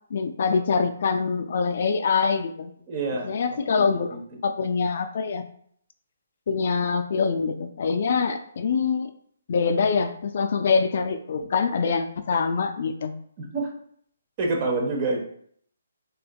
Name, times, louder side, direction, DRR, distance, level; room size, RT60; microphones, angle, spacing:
voice 1, 0.1-2.7 3.1-4.2 4.4-5.5 6.5-9.1 9.5-13.1, left 5 dB, 55° left, 9 dB, 0.3 m, -24 dB
voice 2, 2.9-3.3 3.8-3.9 4.1-4.2 13.4-13.7 14.4-15.2, right 3 dB, 35° right, 0 dB, 1.0 m, -27 dB
3.9 x 3.4 x 2.2 m, 0.63 s
hypercardioid pair, 145°, 0 cm